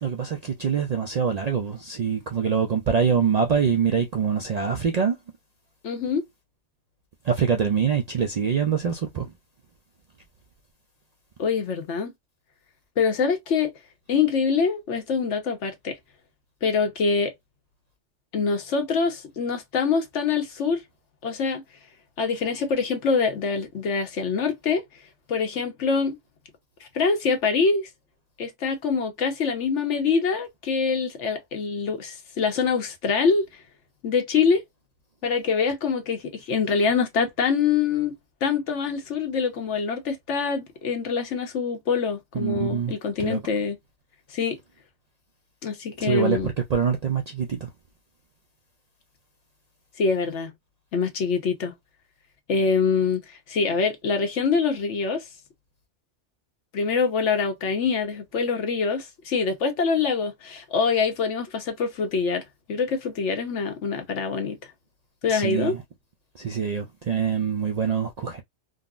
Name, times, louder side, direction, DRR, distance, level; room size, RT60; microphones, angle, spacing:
voice 1, 0.0-5.2 7.2-9.3 42.3-42.9 43.2-43.4 46.0-47.7 65.3-65.8 66.3-68.4, right 6 dB, 65° right, 0.4 m, -24 dB
voice 2, 5.8-6.2 11.4-12.1 13.0-13.7 14.1-16.0 16.6-17.3 18.3-20.8 21.2-21.6 22.2-24.8 25.3-26.2 26.9-27.9 28.4-33.5 34.0-34.6 35.2-38.1 38.4-43.8 44.3-44.6 45.6-46.5 50.0-50.5 50.9-51.7 52.5-55.2 56.7-62.4 62.7-64.6 65.2-65.7, left 5 dB, 85° left, 1.2 m, -24 dB
3.7 x 2.0 x 2.4 m
omnidirectional pair, 1.2 m